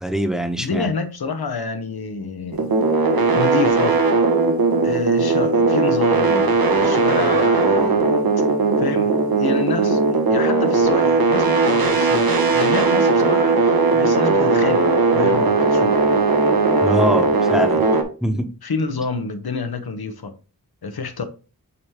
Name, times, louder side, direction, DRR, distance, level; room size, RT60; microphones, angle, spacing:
voice 1, 0.0-0.9 16.8-17.8 18.2-18.4, equal, ahead, 1.1 m, -22 dB
voice 2, 0.6-2.7 3.3-4.0 4.8-8.1 8.8-9.1 9.4-10.0 10.3-14.9 15.1-16.0 18.6-20.3 20.8-21.2, left 4 dB, 75° left, 0.9 m, -28 dB
sound 1, 2.5-18.0, right 3 dB, 70° right, 1.2 m, -18 dB
8.3 x 3.2 x 3.6 m
wide cardioid pair, 65°, 37 cm